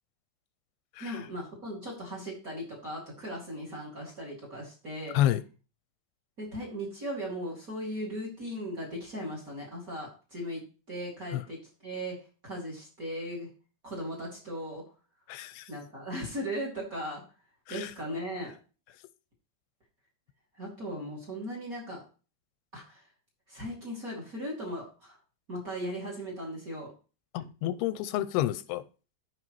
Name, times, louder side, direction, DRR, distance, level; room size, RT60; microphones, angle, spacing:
voice 1, 1.0-5.1 6.4-12.2 12.4-13.5 13.8-14.8 15.7-17.2 17.7-18.5 20.6-22.0 22.7-23.0 23.5-25.2 25.5-26.9, equal, 25° right, 2.4 m, -37 dB
voice 2, 15.3-15.7 17.7-17.9 27.3-28.8, left 13 dB, 90° left, 2.6 m, -29 dB
13.5 x 5.5 x 3.1 m
omnidirectional pair, 4.5 m